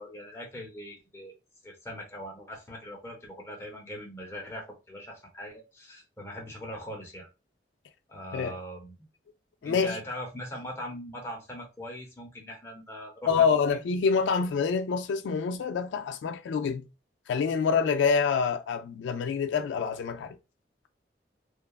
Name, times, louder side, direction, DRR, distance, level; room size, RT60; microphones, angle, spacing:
voice 1, 0.0-1.4 1.6-7.3 8.1-9.0 9.6-13.8, equal, 15° left, 0.8 m, -41 dB
voice 2, 9.6-10.0 13.3-16.9 17.3-20.4, left 5 dB, 90° left, 0.3 m, -26 dB
2.8 x 2.3 x 2.3 m
head